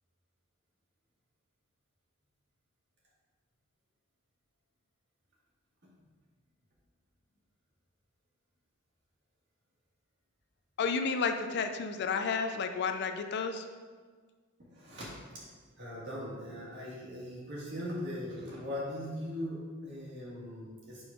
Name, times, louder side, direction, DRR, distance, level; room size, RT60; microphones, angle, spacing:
voice 1, 10.8-13.7, left 5 dB, 50° left, 7 dB, 0.3 m, -31 dB
voice 2, 14.7-15.4 15.8-21.1, left 1 dB, 50° right, -5 dB, 1.7 m, -40 dB
4.6 x 4.1 x 5.0 m, 1.5 s
head